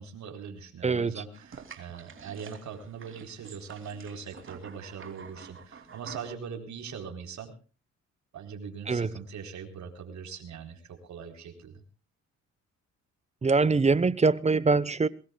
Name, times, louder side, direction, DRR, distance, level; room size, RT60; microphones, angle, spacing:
voice 1, 0.0-7.5 8.3-11.7, right 6 dB, 70° right, 4.2 m, -41 dB
voice 2, 0.8-1.1 8.9-9.1 13.4-15.1, right 4 dB, 20° right, 1.0 m, -23 dB
sound 1, 1.3-6.3, right 6 dB, 40° right, 2.9 m, -48 dB
23.0 x 20.5 x 2.3 m
cardioid pair, 90°, 30 cm